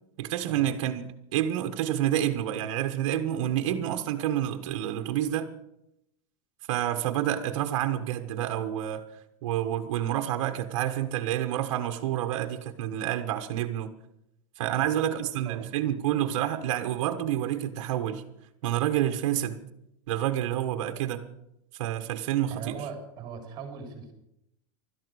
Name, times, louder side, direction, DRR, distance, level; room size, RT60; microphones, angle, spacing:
voice 1, 0.2-5.5 6.7-9.0 9.4-13.9 14.6-18.2 18.6-19.6 20.1-21.3 21.7-22.7, right 11 dB, 55° right, 1.4 m, -28 dB
voice 2, 15.1-15.7 22.5-24.1, right 6 dB, 25° right, 3.7 m, -40 dB
16.5 x 12.5 x 6.3 m
supercardioid pair, 175°, 18 cm